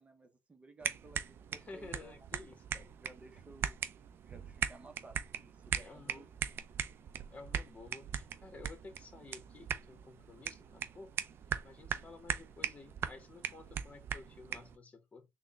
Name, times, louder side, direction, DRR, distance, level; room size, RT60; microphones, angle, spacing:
voice 1, 0.0-2.2 3.0-3.8 4.3-6.3, right 2 dB, 25° right, 0.8 m, -56 dB
sound 1, 0.8-14.8, right 8 dB, 55° right, 0.4 m, -40 dB
voice 2, 1.5-2.9 5.8-6.3 7.3-11.1 11.6-15.3, left 3 dB, 30° left, 1.1 m, -53 dB
3.7 x 2.2 x 3.6 m
supercardioid pair, 70°, 5 cm